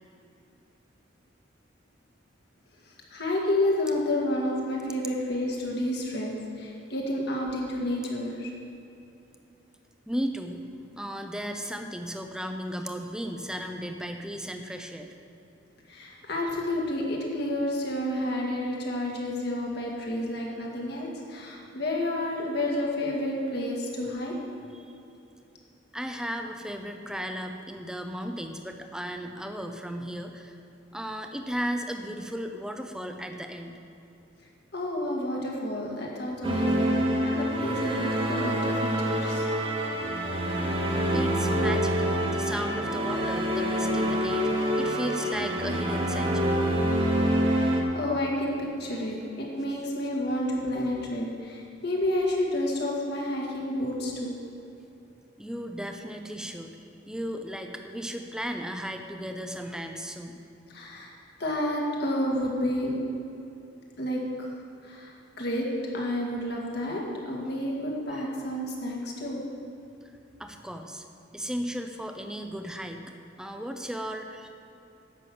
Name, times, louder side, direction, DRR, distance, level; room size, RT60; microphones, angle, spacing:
voice 1, 2.9-8.5 15.9-24.3 34.7-39.5 47.5-54.3 60.7-63.0 64.0-64.5 64.8-69.4, left 1 dB, 60° left, -2 dB, 2.0 m, -30 dB
voice 2, 10.1-10.7 11.0-15.1 24.7-24.9 25.9-30.6 30.9-33.8 41.1-46.5 55.4-56.7 57.1-60.4 70.4-71.0 71.3-73.1 73.4-74.5, equal, 5° right, 5 dB, 0.6 m, -35 dB
sound 1, 36.4-47.8, equal, 30° right, 1.2 m, -26 dB
10.5 x 6.2 x 7.7 m, 2.8 s
head